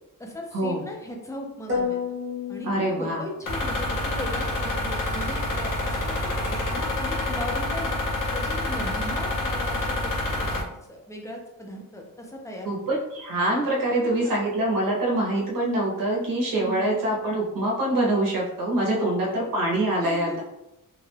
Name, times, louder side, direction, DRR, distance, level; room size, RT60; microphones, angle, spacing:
voice 1, 0.2-2.0 2.5-8.0 8.3-12.9 13.9-14.5 16.5-16.9 18.9-19.5 20.0-20.4, left 1 dB, 10° left, 0 dB, 0.4 m, -37 dB
sound 1, 1.7-3.7, left 5 dB, 35° right, 0.9 m, -30 dB
voice 2, 2.6-3.2 12.6-20.4, right 1 dB, 75° right, -3 dB, 0.7 m, -25 dB
sound 2, 3.5-10.6, left 1 dB, 70° left, 0.7 m, -27 dB
2.3 x 2.0 x 3.1 m, 0.87 s
wide cardioid pair, 165°, 34 cm